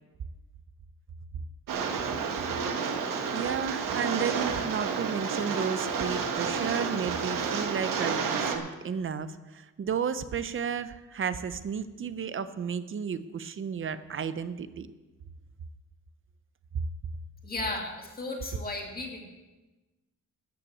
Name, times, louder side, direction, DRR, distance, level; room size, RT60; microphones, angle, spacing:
Rain, 1.7-8.6, right 5 dB, 90° right, 1.4 m, -30 dB
voice 1, 3.3-14.9, right 7 dB, 40° right, 13 dB, 0.6 m, -33 dB
voice 2, 17.4-19.3, left 2 dB, 30° left, 0 dB, 2.0 m, -35 dB
13.5 x 5.9 x 8.3 m, 1.1 s
wide cardioid pair, 165°, 32 cm